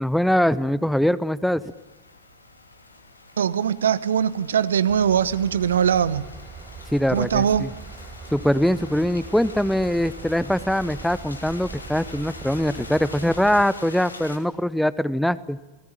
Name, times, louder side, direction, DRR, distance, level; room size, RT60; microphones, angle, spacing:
voice 1, 0.0-1.6 6.9-7.7 8.3-15.6, equal, ahead, 0.8 m, -22 dB
sound 1, 1.6-14.4, left 3 dB, 80° left, 2.8 m, -44 dB
voice 2, 3.4-6.3 7.1-7.7, right 8 dB, 65° right, 1.0 m, -21 dB
Train / Engine, 4.9-13.6, right 5 dB, 20° right, 1.3 m, -41 dB
28.5 x 18.5 x 9.1 m
figure-of-eight pair, 90°, 0 cm